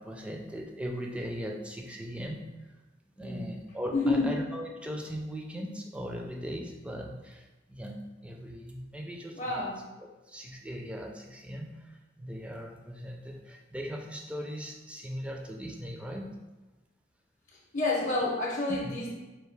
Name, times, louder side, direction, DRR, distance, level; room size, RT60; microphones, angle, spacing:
voice 1, 0.0-2.8 3.2-9.6 10.0-16.4, equal, 5° right, 1 dB, 0.4 m, -39 dB
voice 2, 3.9-4.3 9.4-9.8 17.7-19.1, left 2 dB, 40° left, -2 dB, 0.6 m, -28 dB
4.4 x 2.5 x 3.2 m, 1.1 s
head